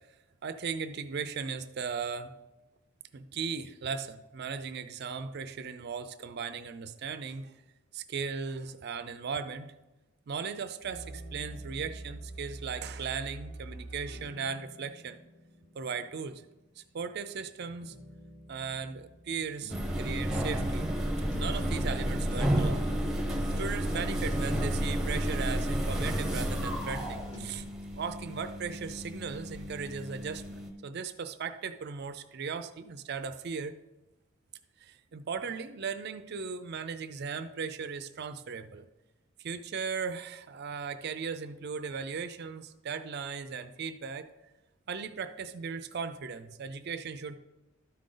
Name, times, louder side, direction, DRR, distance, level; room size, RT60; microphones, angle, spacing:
voice 1, 0.4-2.3 3.1-7.5 7.9-9.7 10.3-15.2 15.7-16.4 16.8-17.9 18.5-20.9 21.4-22.9 23.6-27.6 28.0-33.7 34.8-38.9 39.4-44.3 44.9-47.4, right 5 dB, 50° right, 11 dB, 0.4 m, -37 dB
sound 1, 10.8-17.0 17.8-20.4, right 1 dB, 85° left, 2.6 m, -47 dB
sound 2, 19.6-20.0 20.3-21.0 21.3-22.0 22.3-23.0 23.3-24.0 24.3-25.0 25.3-26.0 26.3-27.0 27.3-27.6, left 1 dB, 55° left, 1.5 m, -50 dB
sound 3, 19.7-30.7, equal, ahead, 0.9 m, -31 dB
12.5 x 5.1 x 3.8 m, 1.0 s
head